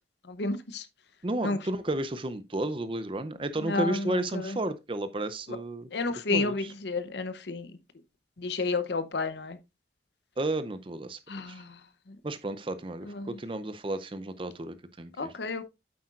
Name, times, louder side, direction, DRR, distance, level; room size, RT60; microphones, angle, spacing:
voice 1, 0.3-0.8 1.4-1.6 3.6-4.0 4.3-4.5 5.9-7.7 8.4-9.6 11.3-11.7 13.2-13.3 15.2-15.7, left 3 dB, 70° left, 0.7 m, -31 dB
voice 2, 1.2-5.9 6.3-6.7 10.4-11.2 11.5-11.6 12.2-15.3, right 1 dB, 30° right, 0.5 m, -32 dB
8.6 x 7.8 x 2.4 m
head